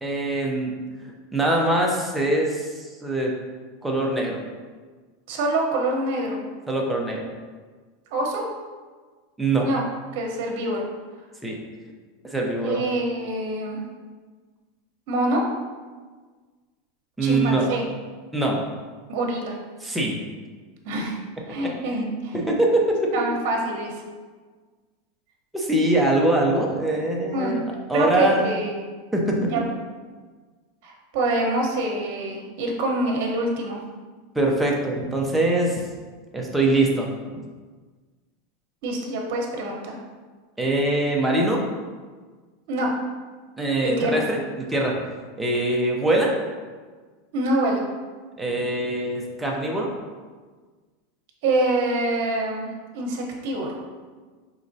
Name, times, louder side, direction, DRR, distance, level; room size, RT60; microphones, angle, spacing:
voice 1, 0.0-0.7 1.3-3.3 3.8-4.4 6.7-7.2 9.4-9.7 11.4-11.6 12.2-12.8 17.2-17.7 18.3-18.6 19.8-20.2 21.5-21.7 22.5-23.0 25.5-27.6 27.9-28.6 29.1-29.5 34.3-35.8 36.3-37.4 40.6-41.6 43.6-45.0 45.4-46.4 48.4-49.9, right 1 dB, 5° right, -2 dB, 0.6 m, -23 dB
voice 2, 5.3-6.4 8.1-8.4 9.6-9.8 10.1-10.9 12.6-13.8 15.1-15.4 17.2-17.8 19.1-19.6 20.8-21.2 21.5-22.4 23.1-24.0 27.3-27.6 27.9-28.7 29.4-29.6 30.8-33.8 38.8-40.0 42.7-42.9 43.8-44.2 47.3-47.8 51.4-52.7 52.9-53.8, right 1 dB, 60° right, 0 dB, 0.9 m, -25 dB
4.8 x 3.0 x 2.7 m, 1.4 s
supercardioid pair, 150°, 0 cm